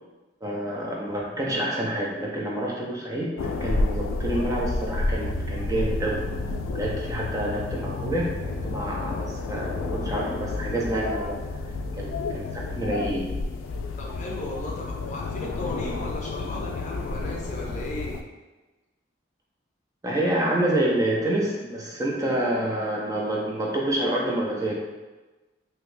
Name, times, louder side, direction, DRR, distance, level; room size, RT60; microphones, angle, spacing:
voice 1, 0.4-6.3 6.7-11.4 12.0-13.3 20.0-24.7, right 1 dB, 20° right, -3 dB, 0.4 m, -28 dB
sound 1, 3.4-18.2, left 3 dB, 85° left, 0.3 m, -30 dB
voice 2, 14.0-18.2, left 1 dB, 40° left, -1 dB, 0.5 m, -36 dB
3.3 x 2.7 x 2.6 m, 1.2 s
head